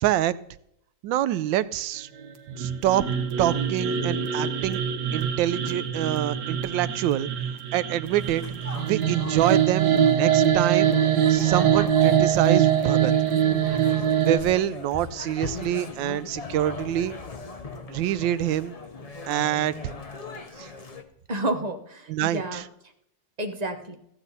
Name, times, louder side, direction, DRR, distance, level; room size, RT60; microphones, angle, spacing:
voice 1, 0.0-0.3 1.0-2.1 2.6-3.0 3.4-4.8 5.1-7.3 7.7-8.4 8.8-10.9 11.3-13.1 14.2-17.2 17.9-18.8 19.3-19.9 20.6-20.7 22.1-22.6, right 12 dB, 85° right, 16 dB, 1.3 m, -26 dB
sound 1, 2.5-14.4, right 9 dB, 65° right, 1.5 m, -23 dB
sound 2, 8.0-21.0, left 3 dB, 55° left, 0.4 m, -39 dB
voice 2, 21.3-22.6 23.4-23.9, right 2 dB, 30° right, 5 dB, 0.8 m, -30 dB
14.5 x 8.9 x 4.1 m, 0.74 s
omnidirectional pair, 2.0 m